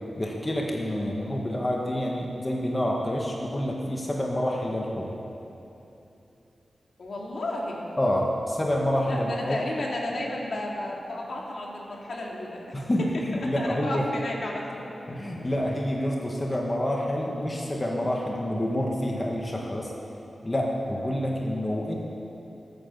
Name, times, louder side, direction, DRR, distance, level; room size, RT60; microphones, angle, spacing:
voice 1, 0.1-5.1 8.0-9.6 12.7-14.0 15.1-19.9 20.4-22.0, left 1 dB, 20° left, -2 dB, 1.6 m, -28 dB
voice 2, 7.0-7.9 9.0-12.8 13.3-14.9, left 1 dB, 65° left, -2 dB, 2.8 m, -33 dB
21.0 x 9.4 x 6.9 m, 2.9 s
wide cardioid pair, 110°, 0 cm